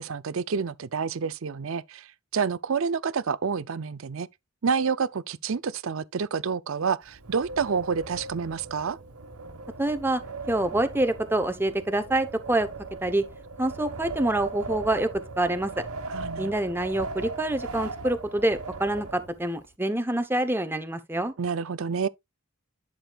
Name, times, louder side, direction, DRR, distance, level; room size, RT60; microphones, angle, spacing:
voice 1, 0.0-4.3 4.6-9.0 16.1-16.5 21.4-22.1, right 5 dB, 60° right, 0.5 m, -28 dB
Wind, 7.0-19.7, right 3 dB, 85° right, 1.5 m, -38 dB
voice 2, 9.8-10.2 10.5-12.7 13.0-13.2 13.6-15.1 15.4-15.9 16.4-21.3, right 1 dB, 10° right, 0.8 m, -26 dB
11.5 x 6.3 x 2.4 m
head